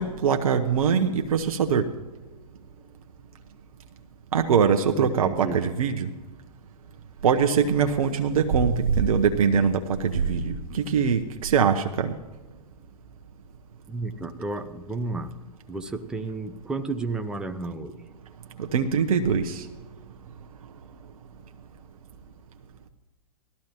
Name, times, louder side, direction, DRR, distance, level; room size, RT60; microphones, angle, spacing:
voice 1, 0.0-1.9 4.3-6.1 7.2-12.1 18.6-19.7, right 6 dB, 60° right, 6 dB, 0.9 m, -22 dB
voice 2, 5.0-5.6 13.9-15.3 15.7-18.0, right 3 dB, 5° right, 7 dB, 0.5 m, -32 dB
18.5 x 13.5 x 3.0 m, 1.2 s
figure-of-eight pair, 110°, 20 cm